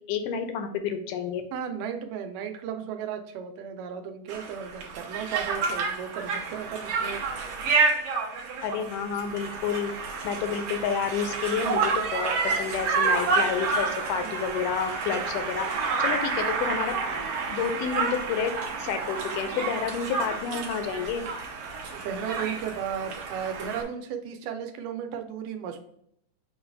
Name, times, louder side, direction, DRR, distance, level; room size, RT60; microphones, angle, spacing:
voice 1, 0.1-1.4 8.6-9.9 10.2-15.7 16.0-16.9 17.5-18.5 18.8-21.2, left 7 dB, 80° left, 7 dB, 2.0 m, -29 dB
voice 2, 1.5-7.2 14.2-14.3 21.9-25.8, right 8 dB, 85° right, 5 dB, 2.2 m, -35 dB
Conversation, 4.3-23.8, right 4 dB, 70° right, 1.6 m, -29 dB
5.9 x 2.3 x 3.3 m, 0.71 s
omnidirectional pair, 3.7 m